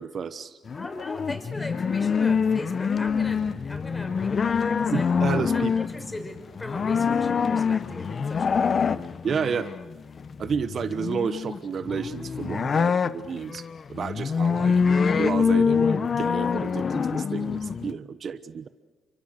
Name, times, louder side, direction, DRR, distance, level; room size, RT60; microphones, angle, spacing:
voice 1, 0.0-0.6 4.9-5.7 9.2-9.7 10.4-13.6 13.9-14.7 15.2-18.7, right 6 dB, 50° right, 12 dB, 1.1 m, -31 dB
sound 1, 0.7-17.9, left 6 dB, 45° left, 0.9 m, -25 dB
voice 2, 0.7-5.1 5.5-9.1, left 1 dB, 15° left, 4 dB, 6.1 m, -38 dB
29.5 x 24.5 x 6.6 m, 1.4 s
cardioid pair, 90°, 0 cm